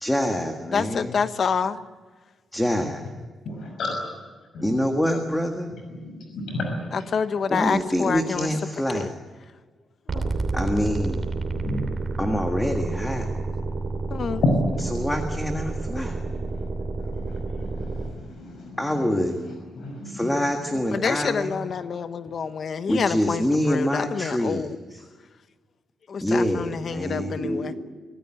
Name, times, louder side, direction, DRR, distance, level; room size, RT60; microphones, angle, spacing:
voice 1, 0.0-1.1 2.5-3.0 4.6-5.7 7.5-9.1 10.5-11.2 12.2-13.3 14.8-16.2 18.8-19.4 20.1-21.6 22.9-24.7 26.2-27.4, equal, 5° left, 4 dB, 1.6 m, -25 dB
voice 2, 0.7-1.8 6.9-8.5 8.9-9.1 10.1-10.3 14.1-14.4 20.9-24.8 26.1-27.7, left 6 dB, 45° left, 11 dB, 1.1 m, -27 dB
voice 3, 3.5-4.0 5.9-6.9 11.5-11.8 14.4-14.5 17.2-17.4 17.8-17.9 18.4-18.8 19.4-19.5 19.7-20.3 27.0-27.8, left 2 dB, 65° left, 2 dB, 5.9 m, -30 dB
sound 1, 10.1-18.1, right 3 dB, 35° right, 2.9 m, -29 dB
25.0 x 17.5 x 9.0 m, 1.4 s
wide cardioid pair, 175°, 0 cm